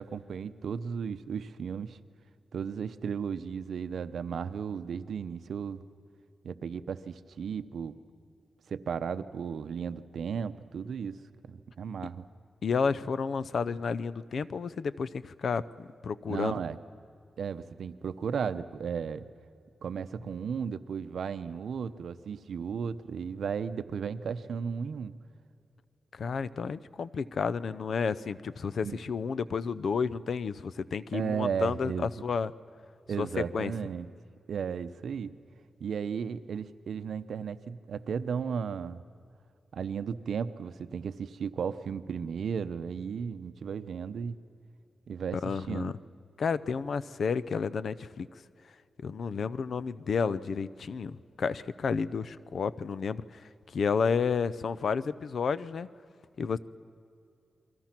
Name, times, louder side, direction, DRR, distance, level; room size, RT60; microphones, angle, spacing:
voice 1, 0.0-2.0 2.5-5.8 6.4-8.0 8.7-11.2 11.4-12.2 16.3-16.8 17.4-19.3 19.8-25.1 28.8-29.0 31.1-32.1 33.1-34.1 34.5-35.3 35.8-39.0 39.7-44.4 45.1-45.9, right 6 dB, 80° right, 12 dB, 0.8 m, -35 dB
voice 2, 12.6-16.6 26.1-32.5 33.2-33.7 45.3-46.0 46.4-48.3 49.0-55.9 56.4-56.6, left 5 dB, 65° left, 15 dB, 0.6 m, -31 dB
29.5 x 23.0 x 6.0 m, 2.4 s
wide cardioid pair, 110°, 0 cm